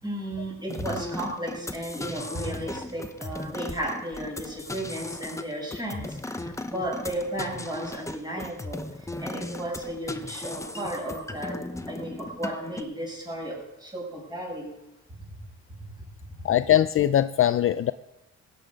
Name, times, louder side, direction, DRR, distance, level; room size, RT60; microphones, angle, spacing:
voice 1, 0.0-8.8 9.2-11.6 11.9-14.8, right 1 dB, 15° right, -2 dB, 5.9 m, -34 dB
sound 1, 0.7-12.8, left 2 dB, 10° left, 0.9 m, -37 dB
voice 2, 16.4-17.9, left 11 dB, 45° left, 13 dB, 0.4 m, -21 dB
15.5 x 9.4 x 5.2 m, 0.91 s
cardioid pair, 90°, 30 cm